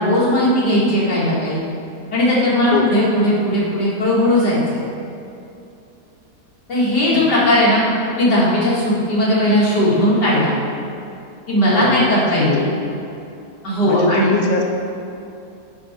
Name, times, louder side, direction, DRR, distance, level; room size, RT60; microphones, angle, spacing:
voice 1, 0.0-1.6 2.1-4.6 6.7-7.8 8.2-10.5 11.5-12.7 13.6-14.3, left 1 dB, 75° left, -8 dB, 2.7 m, -17 dB
voice 2, 7.1-7.5 11.7-12.1 12.3-12.7 13.9-14.6, left 4 dB, 45° left, 1 dB, 0.6 m, -21 dB
9.9 x 4.8 x 4.4 m, 2.7 s
omnidirectional pair, 1.8 m